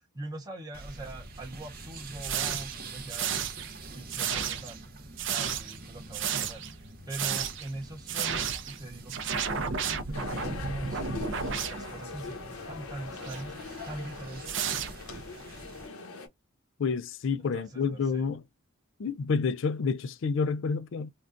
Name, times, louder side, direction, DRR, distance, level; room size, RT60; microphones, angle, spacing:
voice 1, 0.0-3.3 3.9-4.9 5.3-6.6 7.1-9.1 10.1-11.2 11.5-13.5 13.8-14.6 17.4-18.3, right 1 dB, 20° right, 0.7 m, -42 dB
sound 1, 0.7-15.9, right 2 dB, 40° right, 0.9 m, -46 dB
sound 2, 2.2-2.8 3.1-3.7 4.1-4.8 5.2-5.8 6.1-6.7 7.1-7.7 8.1-8.8 9.1-12.2 13.2-13.4 14.4-15.2, right 7 dB, 55° right, 0.5 m, -32 dB
sound 3, 10.1-16.3, left 3 dB, 80° left, 1.0 m, -42 dB
voice 2, 16.8-18.4 19.0-21.1, left 5 dB, 60° left, 0.4 m, -29 dB
3.7 x 2.3 x 2.5 m
head